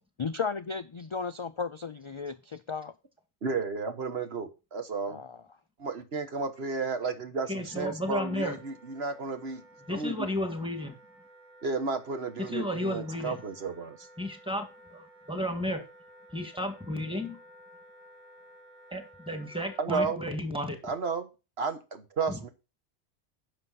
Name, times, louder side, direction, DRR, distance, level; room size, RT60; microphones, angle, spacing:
voice 1, 0.2-2.9 5.1-5.4, left 5 dB, 50° left, 12 dB, 0.3 m, -34 dB
voice 2, 3.4-5.2 5.8-9.6 9.9-10.3 11.6-14.1 19.8-20.2 20.8-21.3 21.6-22.5, right 4 dB, 65° right, 8 dB, 1.6 m, -32 dB
voice 3, 7.5-8.6 9.9-10.9 12.4-13.4 14.2-15.8 16.3-17.4 18.9-20.8 22.3-22.4, left 1 dB, 5° right, 6 dB, 1.9 m, -33 dB
Wind instrument woodwind instrument, 7.7-19.9, right 1 dB, 40° right, 5.0 m, -55 dB
10.5 x 6.8 x 4.1 m, 0.29 s
omnidirectional pair, 1.2 m